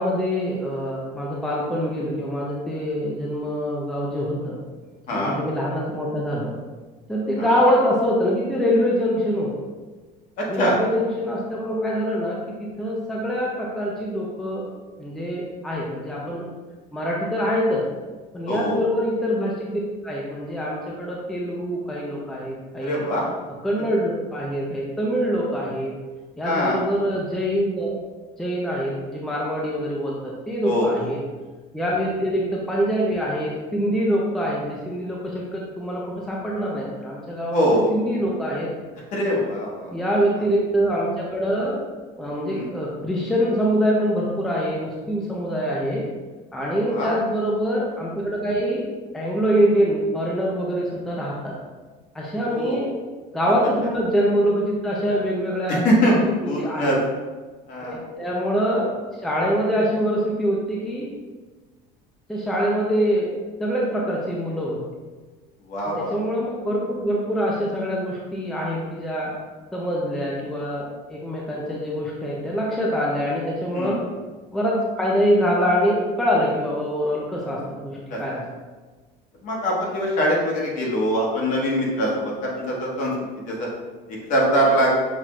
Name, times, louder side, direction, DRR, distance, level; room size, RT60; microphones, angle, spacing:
voice 1, 0.0-4.6 5.1-6.5 7.1-9.5 10.5-14.7 15.0-16.5 16.9-17.8 18.3-23.1 23.6-25.9 26.4-28.0 28.4-31.2 31.7-36.0 36.3-38.7 39.9-41.8 42.2-46.0 46.5-48.8 49.1-51.5 52.1-52.9 53.3-56.2 56.6-57.0 57.8-58.9 59.2-61.1 62.3-63.3 63.6-64.8 66.0-69.3 69.7-74.0 74.5-78.4, equal, ahead, -4 dB, 0.4 m, -24 dB
voice 2, 5.1-5.4 7.4-7.6 10.4-10.8 18.5-18.8 22.8-23.3 26.4-26.8 30.6-31.1 37.5-37.9 39.1-40.0 42.5-42.7 46.9-47.1 52.4-52.8 55.7-56.2 56.4-57.0 57.7-58.0 65.7-66.2 73.7-74.0 78.1-78.4 79.4-83.1 83.4-83.7 84.1-84.9, equal, 50° left, -3 dB, 1.2 m, -23 dB
5.8 x 2.4 x 3.0 m, 1.3 s
cardioid pair, 155°, 17 cm